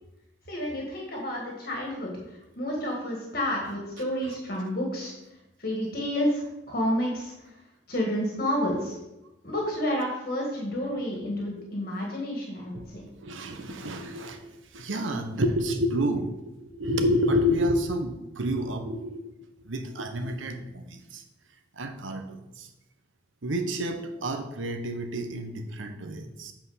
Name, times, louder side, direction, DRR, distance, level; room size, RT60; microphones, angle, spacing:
voice 1, 0.5-9.0 9.4-13.1, equal, 50° left, -1 dB, 1.5 m, -30 dB
voice 2, 13.2-14.4 14.7-19.2 19.6-21.2 21.8-22.7 23.4-26.5, equal, 85° right, 6 dB, 1.0 m, -29 dB
8.0 x 4.4 x 5.6 m, 0.93 s
head